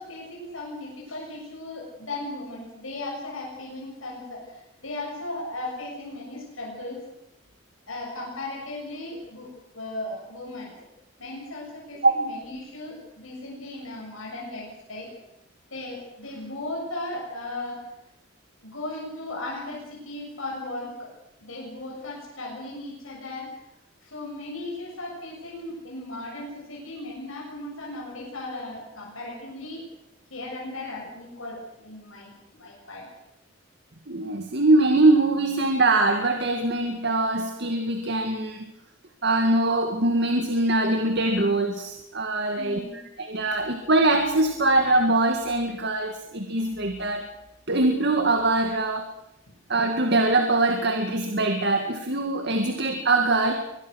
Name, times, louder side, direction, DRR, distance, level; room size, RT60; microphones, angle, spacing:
voice 1, 0.0-7.0 7.9-10.7 11.2-15.1 15.7-17.9 18.6-21.1 21.4-23.5 24.0-29.9 30.3-33.1 42.6-43.0, left 2 dB, 90° left, -3 dB, 7.2 m, -36 dB
voice 2, 34.1-38.6 39.2-42.8 43.2-47.2 47.7-49.1 49.7-53.5, right 2 dB, 55° right, 5 dB, 2.1 m, -22 dB
23.5 x 21.5 x 6.4 m, 0.84 s
head